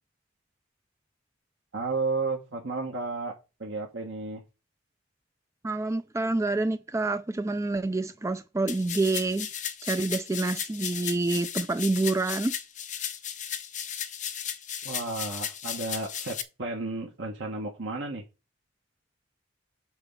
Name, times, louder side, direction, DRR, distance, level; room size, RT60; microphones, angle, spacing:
voice 1, 1.7-3.3 3.6-4.4 14.8-18.2, right 3 dB, 75° right, 1.6 m, -32 dB
voice 2, 5.6-9.5 9.8-12.5, right 2 dB, 15° right, 0.3 m, -27 dB
sound 1, 8.7-16.4, left 9 dB, 40° left, 0.9 m, -35 dB
8.1 x 4.6 x 6.9 m
head